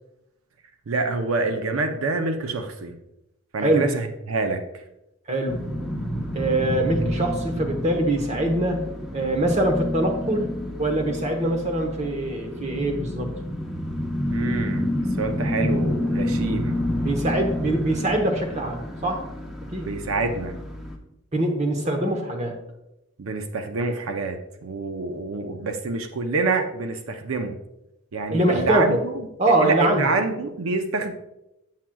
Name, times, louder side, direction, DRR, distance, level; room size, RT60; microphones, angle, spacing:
voice 1, 0.9-3.0 3.5-4.6 14.3-16.8 19.8-20.6 23.2-27.6 28.1-29.1 29.6-31.1, right 3 dB, 90° right, 6 dB, 0.6 m, -27 dB
voice 2, 3.6-3.9 5.3-5.6 6.3-8.8 9.1-13.3 17.0-19.2 19.7-19.9 21.3-22.6 28.3-29.0 29.4-30.0, right 1 dB, 35° right, 4 dB, 0.9 m, -23 dB
sound 1, 5.5-21.0, left 1 dB, ahead, 0.7 m, -29 dB
7.4 x 7.3 x 2.3 m, 0.88 s
head